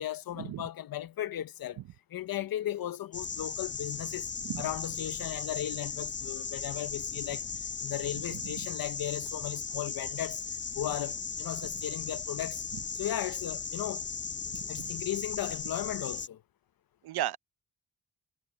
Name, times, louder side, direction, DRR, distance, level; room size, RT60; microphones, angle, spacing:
voice 1, 0.0-1.8 2.1-4.3 4.6-7.4 7.8-10.4 10.7-12.6 13.0-14.1 14.7-16.4, left 12 dB, 70° left, 1.0 m, -36 dB
sound 1, 3.1-16.3, left 5 dB, 30° left, 1.0 m, -37 dB
voice 2, 17.0-17.4, right 12 dB, 85° right, 0.9 m, -34 dB
cardioid pair, 90°, 37 cm